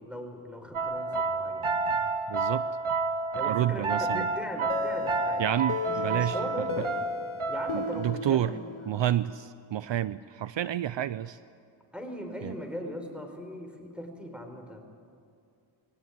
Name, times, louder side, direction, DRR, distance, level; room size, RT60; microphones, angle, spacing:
voice 1, 0.0-1.8 3.3-5.4 5.8-7.0 7.5-9.0 11.9-14.8, equal, ahead, 4 dB, 4.5 m, -39 dB
sound 1, 0.7-8.0, right 4 dB, 85° right, 1.7 m, -30 dB
voice 2, 2.3-2.7 3.4-4.3 5.4-6.4 6.8-6.9 7.7-8.5 8.9-11.4 12.4-12.5, right 12 dB, 65° right, 16 dB, 0.6 m, -29 dB
sound 2, 4.7-9.4, left 7 dB, 90° left, 1.2 m, -36 dB
22.0 x 17.5 x 9.5 m, 2.4 s
cardioid pair, 60°, 48 cm